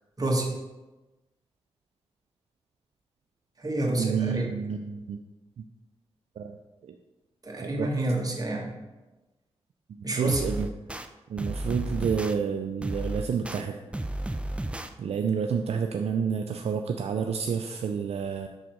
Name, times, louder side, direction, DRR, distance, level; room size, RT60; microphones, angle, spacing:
voice 1, 0.2-0.5 3.6-4.5 7.4-8.7 10.0-10.4, right 2 dB, 35° right, -1 dB, 1.6 m, -28 dB
voice 2, 4.0-5.2 6.4-6.6 6.8-6.9 7.6-7.9 10.0-10.7 11.3-13.8 15.0-18.5, right 6 dB, 70° right, 5 dB, 0.4 m, -29 dB
sound 1, 10.3-11.1 11.4-12.3 12.8-13.6 13.9-14.9, right 1 dB, 10° right, 0.5 m, -32 dB
6.3 x 3.8 x 4.5 m, 1.1 s
cardioid pair, 55°, 11 cm